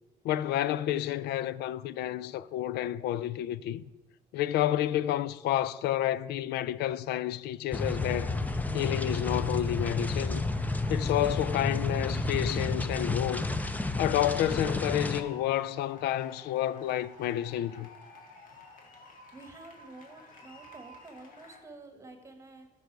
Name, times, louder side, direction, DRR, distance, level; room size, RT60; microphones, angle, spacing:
voice 1, 0.2-3.8 4.3-8.3 8.7-10.4 10.9-13.5 14.0-17.9, left 13 dB, 75° left, 0.4 m, -30 dB
sound 1, 7.7-15.2, left 2 dB, 10° left, 0.6 m, -31 dB
sound 2, 14.1-21.6, left 3 dB, 55° left, 1.7 m, -51 dB
voice 2, 19.3-22.7, right 2 dB, 15° right, 1.3 m, -49 dB
13.0 x 5.3 x 4.6 m
cardioid pair, 110°, 17 cm